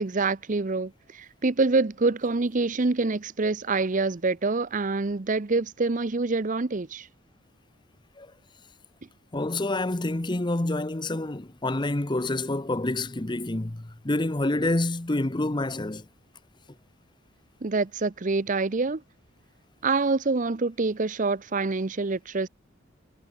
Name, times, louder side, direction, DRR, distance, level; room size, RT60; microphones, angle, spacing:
voice 1, 0.0-7.1 17.6-19.0 19.8-22.5, right 3 dB, 40° right, 0.7 m, -26 dB
voice 2, 9.3-16.0, left 2 dB, 20° left, 0.8 m, -27 dB
head